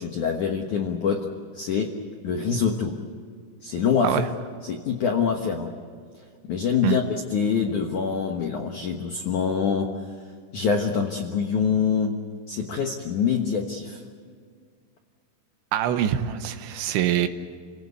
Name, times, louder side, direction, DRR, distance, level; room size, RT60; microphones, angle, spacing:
voice 1, 0.0-3.0 3.6-4.2 4.6-5.7 6.5-9.9 10.5-12.2 12.5-14.0, left 6 dB, 70° left, 2 dB, 1.8 m, -25 dB
voice 2, 15.7-17.3, right 11 dB, 75° right, 9 dB, 3.2 m, -24 dB
29.5 x 17.5 x 8.2 m, 2.1 s
omnidirectional pair, 5.6 m